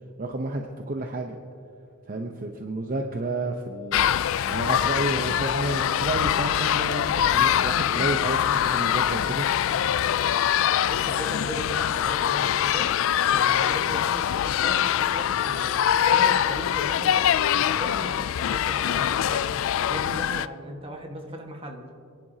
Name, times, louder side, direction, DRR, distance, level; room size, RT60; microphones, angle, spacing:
voice 1, 0.2-1.4 2.1-4.1 4.5-9.5, right 2 dB, 40° right, 3 dB, 0.8 m, -31 dB
sound 1, 3.9-20.5, left 10 dB, 65° left, 0.3 m, -23 dB
voice 2, 10.9-12.9 13.3-15.7 16.1-17.3 17.7-19.5 19.9-21.8, right 1 dB, 25° right, 2 dB, 1.4 m, -37 dB
27.5 x 10.5 x 2.8 m, 2.5 s
head